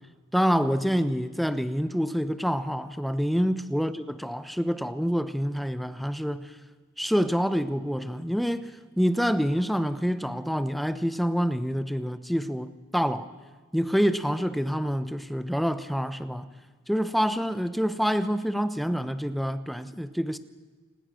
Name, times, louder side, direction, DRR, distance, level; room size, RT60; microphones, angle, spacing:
voice 1, 0.3-6.5 7.0-13.3 13.7-16.5 16.9-20.4, equal, ahead, 0.9 m, -27 dB
29.0 x 19.5 x 6.4 m
head